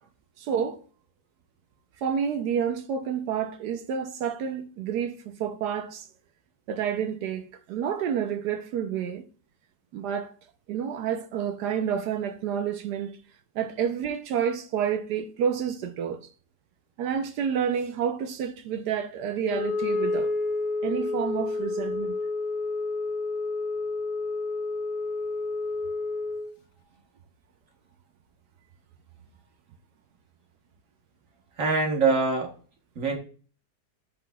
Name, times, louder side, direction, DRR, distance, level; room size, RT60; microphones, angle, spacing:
voice 1, 0.4-0.8 2.0-6.1 6.7-9.2 9.9-10.3 10.7-13.1 13.6-16.2 17.0-20.3 20.8-22.2, right 8 dB, 75° right, 1.2 m, -29 dB
Wind instrument woodwind instrument, 19.4-26.5, left 3 dB, 70° left, 1.1 m, -30 dB
voice 2, 31.6-32.5 32.9-33.2, right 4 dB, 50° right, 1.4 m, -24 dB
9.2 x 5.7 x 2.3 m
omnidirectional pair, 1.9 m